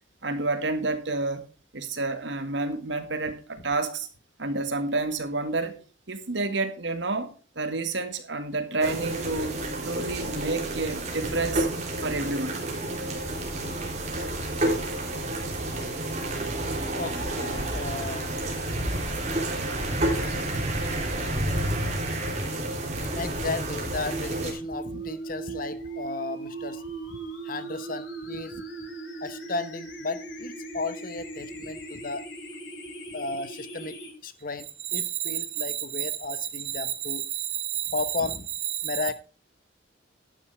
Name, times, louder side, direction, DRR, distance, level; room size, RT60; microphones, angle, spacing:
voice 1, 0.2-1.5 1.7-4.1 4.4-5.8 6.1-11.7 12.0-12.6 20.9-21.2 34.8-37.9 38.7-39.0, right 4 dB, 75° right, 1.9 m, -30 dB
sound 1, 8.8-24.5, right 1 dB, 35° right, 3.3 m, -30 dB
voice 2, 16.9-18.3 23.1-26.8 27.1-27.2 27.4-28.6 29.2-32.2 33.1-34.0 34.2-37.2 37.9-38.5 38.8-39.1, left 3 dB, 50° left, 1.1 m, -34 dB
sound 2, 24.1-34.1, right 3 dB, 85° left, 5.4 m, -38 dB
11.5 x 9.5 x 3.4 m
head